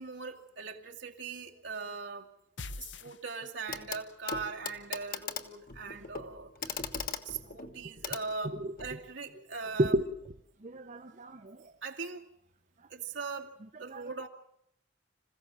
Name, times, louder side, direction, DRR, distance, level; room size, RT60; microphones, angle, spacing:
voice 1, 0.0-2.3 2.8-6.8 7.2-10.0 11.8-12.2 12.9-14.3, right 4 dB, 90° right, 2.4 m, -40 dB
sound 1, 2.6-3.8, left 3 dB, 75° left, 1.1 m, -43 dB
Clock, 3.7-4.0 4.3-9.0 10.2-10.3, left 5 dB, 50° left, 1.5 m, -40 dB
voice 2, 10.6-11.7 13.9-14.0, right 1 dB, 40° right, 0.8 m, -31 dB
27.0 x 16.0 x 7.5 m
head